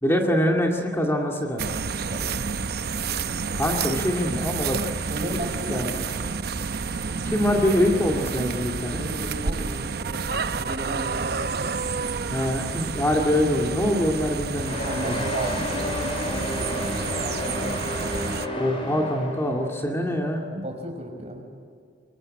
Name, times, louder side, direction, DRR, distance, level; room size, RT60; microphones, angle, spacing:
voice 1, 0.0-1.7 3.5-4.8 5.7-5.9 7.3-9.0 12.3-15.2 18.6-20.4, left 1 dB, 15° left, 1 dB, 2.2 m, -24 dB
sound 1, 1.6-18.5, right 5 dB, 60° right, 0.8 m, -30 dB
voice 2, 5.1-6.0 9.0-11.7 14.8-16.7 17.2-18.1 19.9-20.1 20.5-21.4, right 1 dB, 35° right, 3 dB, 5.3 m, -34 dB
sound 2, 14.6-19.7, left 1 dB, 30° left, 5.6 m, -31 dB
25.5 x 24.0 x 9.8 m, 2.1 s
head